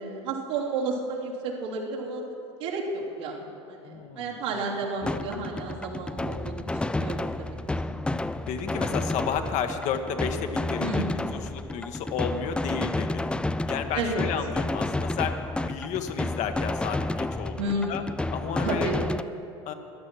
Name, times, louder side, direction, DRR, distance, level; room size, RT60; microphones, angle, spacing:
voice 1, 0.0-2.2 2.6-7.6 7.8-7.9 10.8-11.1 13.9-14.2 17.6-17.9 18.6-19.1, right 3 dB, 75° right, -4 dB, 3.1 m, -32 dB
voice 2, 3.8-4.6 5.0-5.3 8.5-11.0 11.3-13.3 13.7-15.4 15.7-18.0 18.3-18.9 19.7-19.8, left 7 dB, 50° left, 7 dB, 1.2 m, -32 dB
sound 1, 5.0-19.2, left 2 dB, 5° left, 0.4 m, -30 dB
14.5 x 11.0 x 6.1 m, 2.7 s
hypercardioid pair, 80°, 16 cm